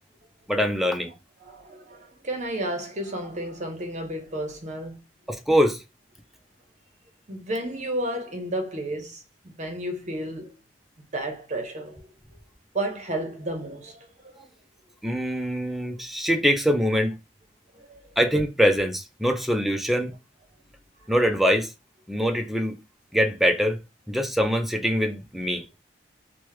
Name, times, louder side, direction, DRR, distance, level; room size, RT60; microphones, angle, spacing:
voice 1, 0.5-1.1 5.3-5.8 15.0-17.1 18.2-20.2 21.1-21.7 22.1-22.8 23.1-23.8 24.1-25.6, equal, ahead, 0.4 m, -23 dB
voice 2, 1.4-5.0 7.3-9.2 9.6-10.6 11.1-12.0 12.7-14.0 17.8-18.0, right 1 dB, 40° right, 0.8 m, -32 dB
3.0 x 2.1 x 3.2 m
head